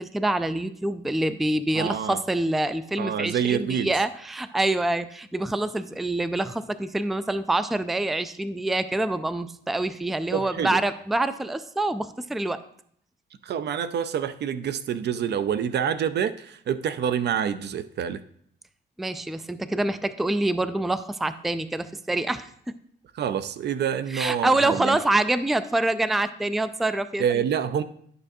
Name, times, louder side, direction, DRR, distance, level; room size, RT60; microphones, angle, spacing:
voice 1, 0.0-12.6 19.0-22.5 24.1-27.4, right 2 dB, ahead, 12 dB, 0.4 m, -26 dB
voice 2, 1.7-2.2 3.0-3.9 10.3-10.8 13.4-18.2 23.1-25.0 27.2-27.8, right 8 dB, 60° right, 13 dB, 0.5 m, -27 dB
11.0 x 6.6 x 2.7 m, 0.65 s
cardioid pair, 90°, 20 cm